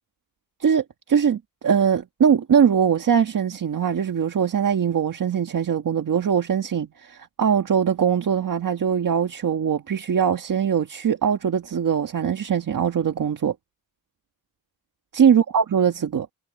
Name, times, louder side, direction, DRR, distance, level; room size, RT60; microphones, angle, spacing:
voice 1, 0.6-13.5 15.2-16.3, right 7 dB, 60° right, 1.6 m, -21 dB
wide cardioid pair, 170°, 36 cm